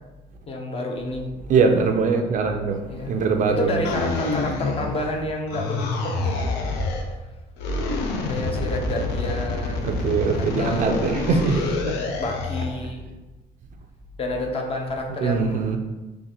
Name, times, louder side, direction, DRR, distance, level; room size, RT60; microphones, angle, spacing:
voice 1, 0.5-1.3 2.9-3.2 3.5-6.6 8.2-10.0 10.3-11.9 12.2-13.1 14.2-15.7, left 1 dB, 35° left, 0.6 m, -30 dB
voice 2, 1.5-3.8 9.8-12.2 15.2-15.8, right 5 dB, 50° right, 0.4 m, -22 dB
sound 1, 3.8-5.2 5.5-7.1 7.6-12.8, left 3 dB, 85° left, 0.5 m, -27 dB
3.8 x 2.5 x 2.8 m
cardioid pair, 110°, 17 cm